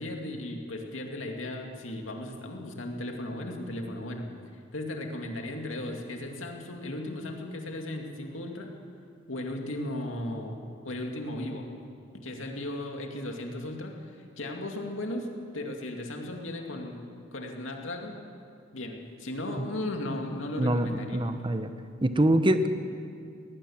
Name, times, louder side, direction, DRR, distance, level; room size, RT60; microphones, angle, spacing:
voice 1, 0.0-4.3 4.7-8.7 9.3-11.6 12.2-13.9 14.4-15.3 15.5-17.0 17.3-18.2 18.7-21.2, left 1 dB, 85° left, 2 dB, 2.4 m, -36 dB
voice 2, 21.1-21.7 22.0-22.7, right 1 dB, 25° right, 9 dB, 1.1 m, -24 dB
20.0 x 19.0 x 7.3 m, 2.4 s
head